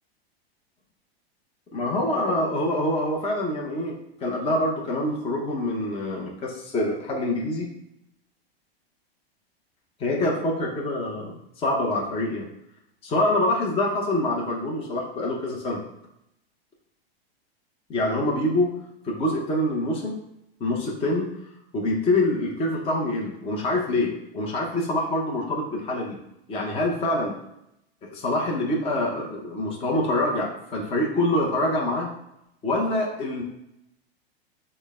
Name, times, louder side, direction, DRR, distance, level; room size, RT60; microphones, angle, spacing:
voice 1, 1.7-7.7 10.0-12.5 13.0-15.8 17.9-20.2 20.6-21.4 21.7-26.2 26.5-27.3 28.0-32.1 32.6-33.4, left 1 dB, 20° left, -1 dB, 0.7 m, -25 dB
6.3 x 2.2 x 3.5 m, 0.83 s
hypercardioid pair, 130°, 31 cm